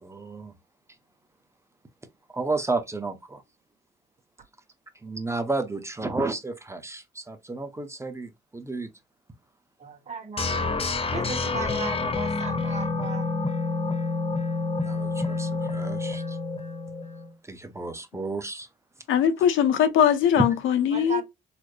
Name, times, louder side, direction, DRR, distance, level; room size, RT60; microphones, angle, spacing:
voice 1, 0.0-0.5 2.3-3.4 5.0-8.9 14.8-16.4 17.4-18.7 20.4-20.5, right 3 dB, 15° right, 0.7 m, -31 dB
voice 2, 9.8-10.7 11.1-13.3 20.9-21.2, right 4 dB, 35° right, 1.4 m, -36 dB
sound 1, 10.4-17.3, left 3 dB, 30° left, 0.7 m, -28 dB
voice 3, 19.1-21.2, left 9 dB, 80° left, 0.7 m, -21 dB
4.1 x 2.0 x 3.2 m
cardioid pair, 90°, 20 cm